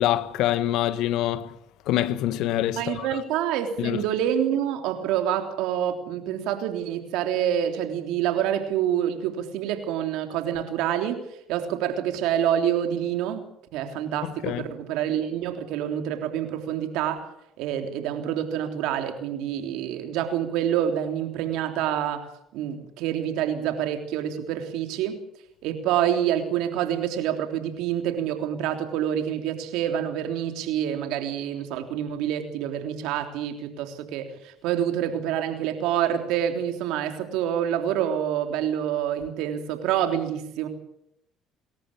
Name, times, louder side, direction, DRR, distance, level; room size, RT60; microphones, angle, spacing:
voice 1, 0.0-1.6 1.9-3.2 3.8-4.0 14.4-14.6, left 13 dB, 70° left, 1.3 m, -25 dB
voice 2, 2.8-11.2 11.5-13.4 13.7-17.3 17.6-22.3 22.5-25.2 25.6-40.7, right 10 dB, 75° right, 3.4 m, -27 dB
29.0 x 14.0 x 8.7 m
supercardioid pair, 70°, 0 cm